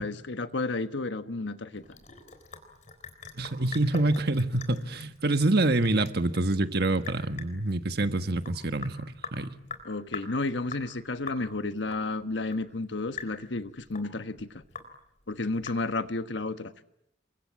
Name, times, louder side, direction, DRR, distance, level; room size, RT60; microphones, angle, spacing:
voice 1, 0.0-1.8 9.8-14.6 15.3-16.7, left 2 dB, 75° left, 1.3 m, -32 dB
Sink (filling or washing) / Drip, 1.7-16.2, left 5 dB, 40° left, 4.0 m, -45 dB
voice 2, 3.3-9.0 9.3-9.5, right 2 dB, 55° right, 1.5 m, -26 dB
29.0 x 24.0 x 8.7 m
head